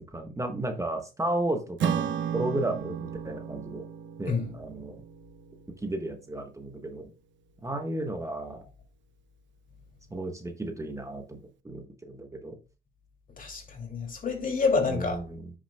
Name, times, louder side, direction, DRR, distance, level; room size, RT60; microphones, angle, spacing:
voice 1, 0.1-2.1 2.3-3.9 4.2-5.0 5.8-7.1 7.6-8.6 10.1-11.4 11.6-12.6 14.9-15.5, right 1 dB, 15° right, 1.2 m, -33 dB
Acoustic guitar / Strum, 1.8-6.5, right 8 dB, 70° right, 0.8 m, -34 dB
voice 2, 13.4-15.2, left 4 dB, 45° left, 2.7 m, -28 dB
9.8 x 6.2 x 2.2 m
cardioid pair, 90°, 20 cm